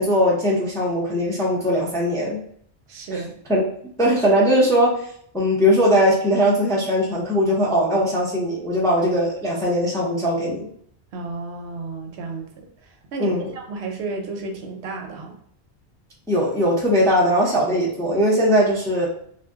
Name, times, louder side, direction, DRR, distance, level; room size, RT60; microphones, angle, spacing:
voice 1, 0.0-2.4 3.1-3.2 3.5-3.6 4.0-5.1 5.3-10.7 13.2-13.5 16.3-19.1, equal, 5° left, -4 dB, 0.5 m, -20 dB
voice 2, 2.9-3.3 11.1-15.4, right 3 dB, 70° right, 2 dB, 0.8 m, -32 dB
2.6 x 2.2 x 3.4 m, 0.64 s
omnidirectional pair, 1.2 m